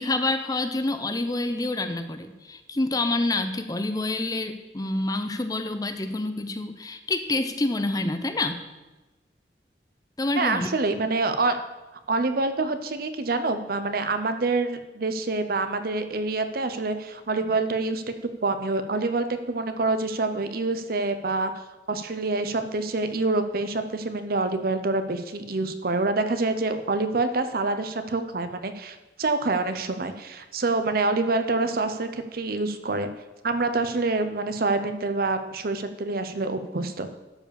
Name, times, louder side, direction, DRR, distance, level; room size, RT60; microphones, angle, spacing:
voice 1, 0.0-8.6 10.2-10.7, left 2 dB, 20° left, 9 dB, 0.6 m, -27 dB
voice 2, 10.4-11.6 12.1-18.0 18.4-21.5 21.9-33.1 33.4-37.1, right 3 dB, 55° right, 9 dB, 0.7 m, -26 dB
12.0 x 4.9 x 6.9 m, 1.1 s
head